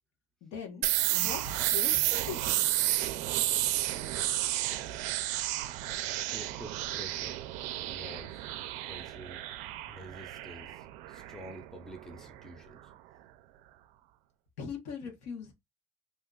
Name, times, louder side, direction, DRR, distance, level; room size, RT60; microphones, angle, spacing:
voice 1, 0.4-2.7 14.6-15.5, left 6 dB, 80° left, 1.1 m, -41 dB
sound 1, 0.8-12.5, right 14 dB, 85° right, 0.4 m, -32 dB
voice 2, 6.3-7.4 7.9-8.5 8.9-9.5 9.9-12.9, equal, 5° left, 0.5 m, -48 dB
2.7 x 2.3 x 3.6 m
cardioid pair, 160°, 12 cm